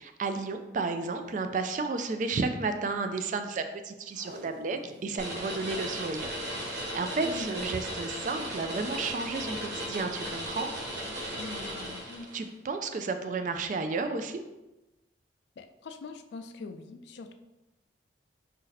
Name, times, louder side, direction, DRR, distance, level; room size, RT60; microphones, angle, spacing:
voice 1, 0.0-6.3 6.7-10.7 12.3-14.4, right 4 dB, 40° right, 8 dB, 0.3 m, -32 dB
Packing tape duct tape, 4.1-5.2 5.6-5.7 5.8-5.9 6.5-6.8 7.8-8.1 8.6-8.7, right 1 dB, 90° right, 0.9 m, -49 dB
sound 1, 5.2-12.4, equal, 75° right, 1.4 m, -36 dB
voice 2, 7.2-7.6 11.3-12.3 15.6-17.3, left 3 dB, 65° left, 8 dB, 0.3 m, -43 dB
4.0 x 2.7 x 4.0 m, 1.0 s
head